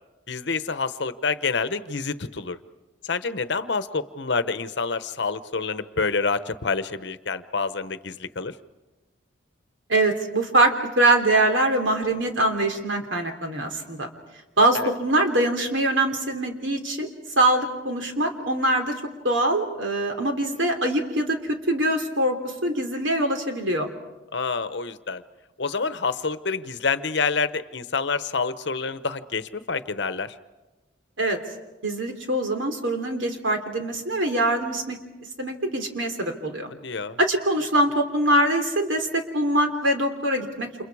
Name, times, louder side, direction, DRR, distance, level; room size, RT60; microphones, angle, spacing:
voice 1, 0.3-2.6 3.0-8.5 14.7-14.9 24.3-25.2 25.6-30.3 36.8-37.2, left 4 dB, 60° left, 12 dB, 0.9 m, -27 dB
voice 2, 9.9-14.1 14.6-17.1 17.4-18.9 19.2-23.9 31.2-31.4 31.8-35.0 35.4-36.7 37.2-40.7, right 1 dB, 75° right, 5 dB, 3.2 m, -23 dB
30.0 x 28.0 x 4.8 m, 1.1 s
head